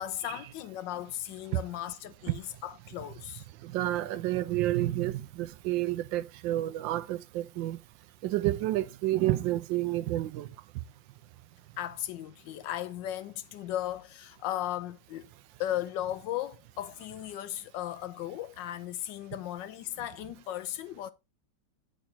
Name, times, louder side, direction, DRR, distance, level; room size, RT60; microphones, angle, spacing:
voice 1, 0.0-3.4 11.8-15.3 15.6-21.1, left 12 dB, 75° left, 1.2 m, -36 dB
voice 2, 3.6-7.8 8.2-10.5, right 15 dB, 75° right, 1.2 m, -29 dB
8.8 x 5.0 x 4.2 m
omnidirectional pair, 2.1 m